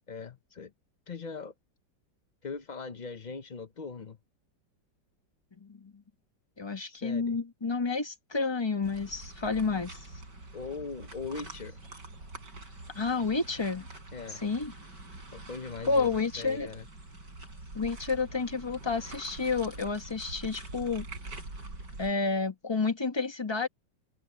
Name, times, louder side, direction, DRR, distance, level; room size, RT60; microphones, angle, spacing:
voice 1, 0.1-0.7 1.1-1.5 2.4-4.2 6.9-7.4 10.5-11.8 14.1-14.4 15.3-16.1 16.4-16.9, left 4 dB, 90° left, 0.4 m, -40 dB
voice 2, 5.6-6.0 6.6-10.1 12.9-13.9 14.4-14.7 15.9-16.7 17.7-21.1 22.0-23.7, left 4 dB, 20° left, 0.9 m, -30 dB
sound 1, 8.8-22.1, right 2 dB, 65° right, 7.9 m, -45 dB
omnidirectional pair, 2.0 m